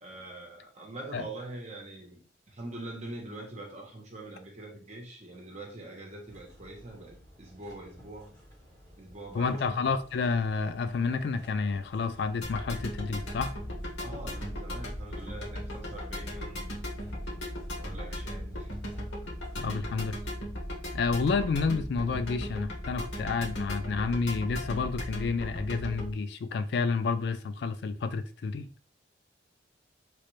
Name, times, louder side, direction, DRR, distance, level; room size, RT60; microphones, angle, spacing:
voice 1, 0.0-2.2 2.5-8.3 9.0-9.8 14.0-16.8 17.8-18.8 19.6-19.8, right 2 dB, 40° right, 0.9 m, -44 dB
sound 1, 6.2-20.1, equal, 25° left, 1.5 m, -55 dB
voice 2, 9.3-13.5 19.6-20.1 20.9-28.7, left 4 dB, 65° left, 0.3 m, -30 dB
sound 2, 12.4-26.1, equal, 85° left, 1.1 m, -37 dB
3.2 x 2.4 x 3.1 m
head